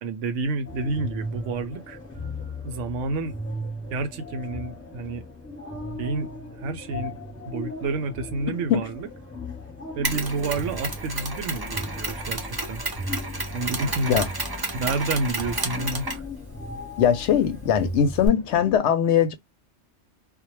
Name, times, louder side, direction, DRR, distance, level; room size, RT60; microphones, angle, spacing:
voice 1, 0.0-2.0 2.6-3.4 3.9-5.2 6.0-6.3 6.6-7.1 7.5-9.1 10.0-12.8 13.5-14.2 14.7-16.2, right 3 dB, 70° right, 0.9 m, -29 dB
sound 1, 0.7-18.8, left 1 dB, 10° left, 0.8 m, -37 dB
Mechanisms, 10.0-18.3, right 2 dB, 30° right, 0.4 m, -32 dB
voice 2, 17.0-19.3, left 8 dB, 70° left, 0.8 m, -21 dB
2.2 x 2.1 x 3.0 m
omnidirectional pair, 1.3 m